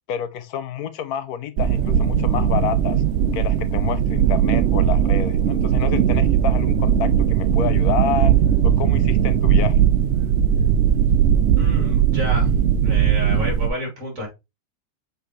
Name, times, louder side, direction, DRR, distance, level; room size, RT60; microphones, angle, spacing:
voice 1, 0.1-3.0 3.3-8.3 8.6-9.9, left 8 dB, 75° left, 1.1 m, -29 dB
sound 1, 1.6-13.7, right 9 dB, 70° right, 0.6 m, -18 dB
voice 2, 11.6-12.5 12.8-14.3, left 1 dB, 55° right, 3.4 m, -30 dB
6.7 x 4.7 x 3.1 m
omnidirectional pair, 1.7 m